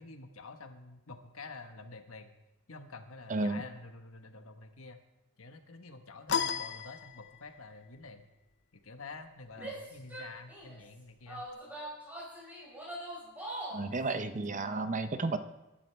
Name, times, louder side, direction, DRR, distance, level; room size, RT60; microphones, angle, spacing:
voice 1, 0.0-2.3 2.7-5.0 5.4-8.3 8.8-11.5, left 3 dB, 70° left, 6 dB, 1.3 m, -48 dB
voice 2, 3.3-3.6 9.6-9.7 13.7-15.4, right 3 dB, 35° right, 10 dB, 0.7 m, -32 dB
sound 1, 6.3-7.7, left 7 dB, 55° left, 0.6 m, -34 dB
Female speech woman speaking / Yell, 9.5-10.8 11.3-13.9, right 1 dB, 10° right, 4.9 m, -42 dB
23.0 x 11.5 x 3.4 m, 0.98 s
head